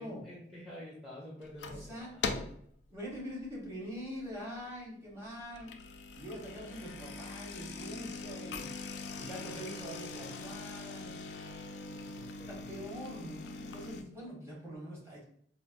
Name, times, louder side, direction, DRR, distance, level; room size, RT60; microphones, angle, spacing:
voice 1, 0.0-2.2 9.3-10.4 11.3-12.8, left 1 dB, ahead, -6 dB, 0.6 m, -50 dB
sound 1, 1.4-1.9 2.2-2.7 3.1-3.4 4.0-4.1 4.3-4.4 5.4-14.0, left 4 dB, 80° left, 0.3 m, -42 dB
voice 2, 1.7-2.5 2.9-5.7 6.2-8.7 9.1-11.2 12.5-15.2, equal, 15° right, -4 dB, 1.0 m, -44 dB
4.2 x 2.0 x 2.5 m, 0.65 s
head